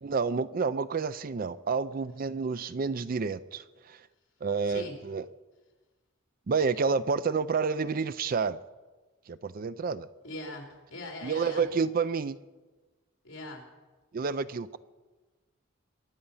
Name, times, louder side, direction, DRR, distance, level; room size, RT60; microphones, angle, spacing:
voice 1, 0.0-4.0 4.4-5.2 6.5-8.6 9.3-10.1 11.2-12.4 14.1-14.8, right 5 dB, 45° right, 16 dB, 0.4 m, -29 dB
voice 2, 4.6-5.0 10.2-11.7 13.2-13.7, left 1 dB, 65° left, 1 dB, 3.5 m, -41 dB
23.5 x 9.3 x 5.6 m, 1.3 s
head